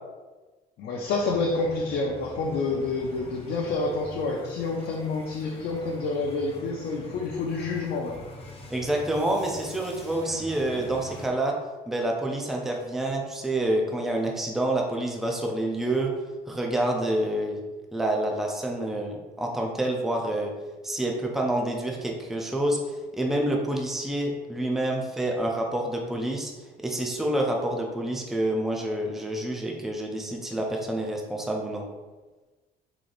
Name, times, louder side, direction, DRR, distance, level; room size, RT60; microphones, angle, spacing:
voice 1, 0.8-8.2, left 3 dB, 70° left, -1 dB, 0.6 m, -28 dB
sound 1, 1.0-11.3, left 1 dB, 35° left, 0.7 m, -44 dB
voice 2, 8.7-11.6 11.9-16.1 16.5-17.6 17.9-20.5 20.8-26.5 26.8-31.8, right 1 dB, ahead, 0 dB, 0.4 m, -28 dB
3.8 x 3.2 x 2.4 m, 1.2 s
cardioid pair, 110°, 17 cm